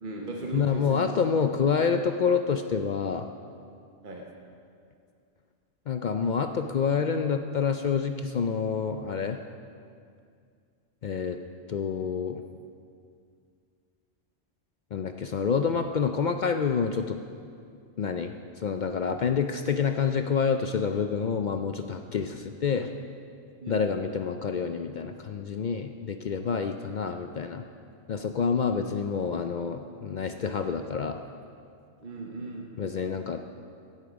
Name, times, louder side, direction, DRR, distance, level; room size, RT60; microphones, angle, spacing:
voice 1, 0.0-1.1 4.0-4.2 23.6-23.8 32.0-32.7, right 2 dB, 45° right, -1 dB, 1.2 m, -36 dB
voice 2, 0.5-3.3 5.9-9.4 11.0-11.4 11.7-12.4 14.9-17.2 18.0-22.9 23.7-27.6 28.1-31.2 32.8-33.4, left 6 dB, 60° left, 7 dB, 0.5 m, -28 dB
16.5 x 8.3 x 5.1 m, 2.3 s
omnidirectional pair, 1.2 m